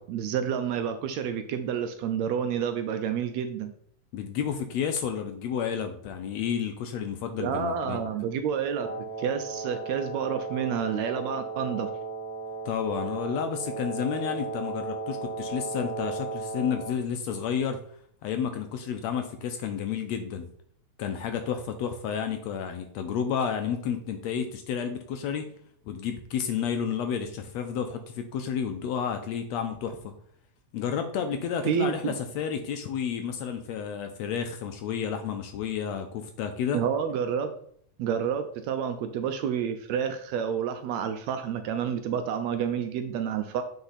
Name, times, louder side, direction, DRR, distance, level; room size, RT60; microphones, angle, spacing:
voice 1, 0.0-3.7 7.4-8.9 9.2-11.9 31.7-32.1 36.7-37.5 38.0-43.6, right 8 dB, 80° right, 8 dB, 1.7 m, -29 dB
voice 2, 4.1-8.0 12.6-17.8 18.2-20.5 21.0-25.5 25.9-30.2 30.7-36.8, left 7 dB, 75° left, 7 dB, 1.7 m, -31 dB
Wind instrument woodwind instrument, 8.7-17.0, right 3 dB, 10° right, 1.4 m, -35 dB
8.7 x 4.4 x 4.1 m, 0.64 s
omnidirectional pair, 3.5 m